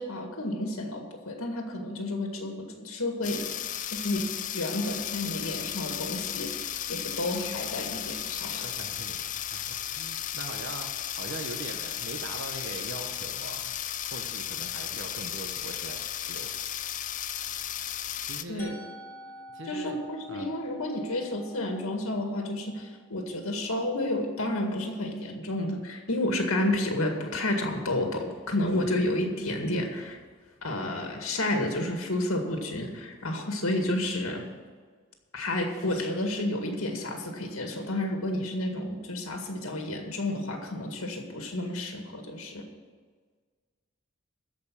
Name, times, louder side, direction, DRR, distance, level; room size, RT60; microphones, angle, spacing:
voice 1, 0.0-3.5 3.9-4.3 4.5-8.7 18.5-18.7 19.6-30.2 30.6-34.4 35.3-42.7, left 1 dB, 80° left, 3 dB, 2.0 m, -31 dB
sound 1, 3.2-18.4, left 10 dB, 35° left, 0.4 m, -35 dB
voice 2, 8.6-13.7 14.0-16.0 16.3-16.5 18.3-18.8 19.5-20.0 20.3-20.5, right 2 dB, 60° right, 4 dB, 0.9 m, -41 dB
Musical instrument, 18.6-24.5, left 1 dB, 10° left, 2.2 m, -49 dB
13.5 x 5.2 x 8.6 m, 1.5 s
head